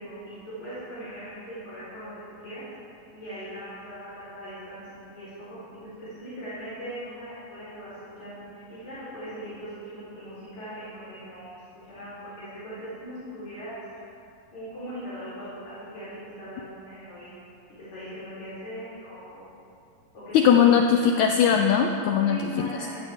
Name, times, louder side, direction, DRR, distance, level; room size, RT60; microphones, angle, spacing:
voice 1, 0.0-2.1 2.4-2.6 3.1-7.9 8.2-11.6 11.9-13.8 14.5-17.3 17.9-19.5 20.1-20.7 21.0-21.1 22.3-23.0, equal, 55° left, -12 dB, 5.3 m, -40 dB
voice 2, 20.3-22.7, left 8 dB, 85° left, 4 dB, 1.6 m, -20 dB
17.0 x 14.5 x 3.6 m, 2.5 s
omnidirectional pair, 4.0 m